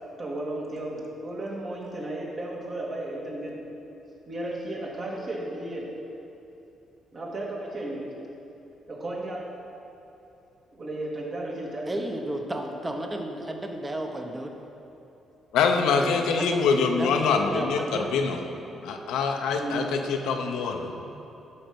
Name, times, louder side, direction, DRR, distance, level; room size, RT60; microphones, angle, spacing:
voice 1, 0.2-3.6 4.3-5.9 7.1-8.1 8.9-9.5 10.7-12.0 15.9-16.3 19.6-19.9, right 1 dB, 45° right, -3 dB, 2.3 m, -34 dB
voice 2, 11.9-14.5 16.4-18.1 18.6-18.8, right 1 dB, 20° right, 3 dB, 1.1 m, -33 dB
voice 3, 15.5-18.4 18.8-21.1, left 5 dB, 90° left, 3 dB, 0.8 m, -25 dB
12.0 x 5.2 x 6.1 m, 2.9 s
cardioid pair, 90°, 0 cm